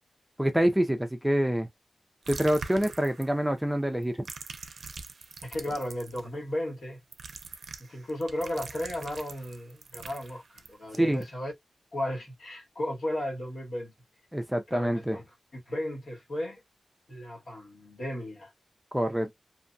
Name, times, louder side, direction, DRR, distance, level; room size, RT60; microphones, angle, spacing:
voice 1, 0.4-1.7 2.3-4.2 11.0-11.2 14.3-15.2 18.9-19.3, right 1 dB, 5° right, 0.4 m, -26 dB
sound 1, 2.2-3.5 4.0-6.2 7.1-11.2, right 4 dB, 70° right, 0.4 m, -43 dB
voice 2, 5.4-7.0 7.8-11.5 11.9-13.9 14.7-15.2 15.5-16.6 17.1-18.5, left 1 dB, 80° left, 1.6 m, -35 dB
2.6 x 2.1 x 2.6 m
wide cardioid pair, 155°, 0 cm